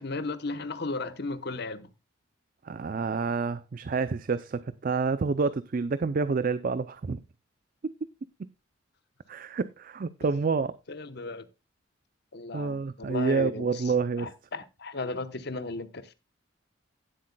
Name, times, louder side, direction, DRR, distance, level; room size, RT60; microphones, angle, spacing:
voice 1, 0.0-1.9 10.9-11.5 12.3-13.8 14.2-16.1, left 3 dB, 55° left, 0.9 m, -35 dB
voice 2, 2.6-7.2 7.8-7.9 9.3-10.8 12.5-14.3, right 4 dB, 45° right, 0.4 m, -28 dB
17.0 x 7.8 x 2.2 m
head